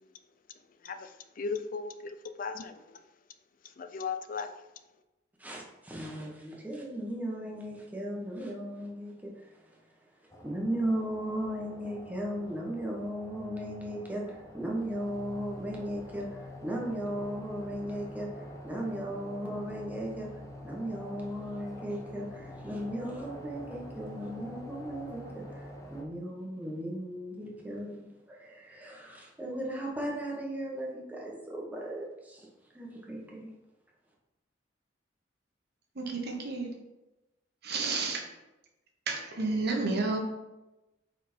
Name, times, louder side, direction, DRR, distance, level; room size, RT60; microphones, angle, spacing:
voice 1, 1.4-2.7 3.8-4.5, left 5 dB, 45° left, 8 dB, 0.5 m, -36 dB
voice 2, 5.4-9.8 10.4-20.3 20.6-32.5 32.7-33.5, right 1 dB, 10° right, -2 dB, 1.1 m, -36 dB
sound 1, 10.3-26.0, equal, 15° left, 0.8 m, -46 dB
voice 3, 36.0-36.7 37.6-38.2 39.1-40.2, right 3 dB, 60° right, 2 dB, 1.1 m, -31 dB
5.0 x 4.5 x 4.4 m, 1.0 s
head